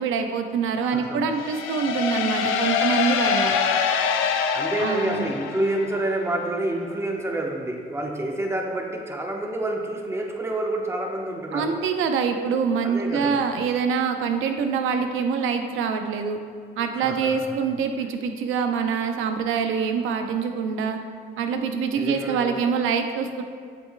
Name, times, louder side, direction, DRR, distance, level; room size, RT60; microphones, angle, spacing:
voice 1, 0.0-3.5 4.8-5.3 11.5-16.4 16.8-21.0 21.4-23.4, right 6 dB, 85° right, 6 dB, 0.6 m, -25 dB
voice 2, 0.8-1.3 4.5-11.7 12.8-13.4 16.9-17.6 21.9-22.6, right 1 dB, 15° right, 1 dB, 0.9 m, -28 dB
sound 1, 1.4-6.1, left 6 dB, 90° left, 0.5 m, -25 dB
7.9 x 7.8 x 2.2 m, 2.1 s
cardioid pair, 90°, 20 cm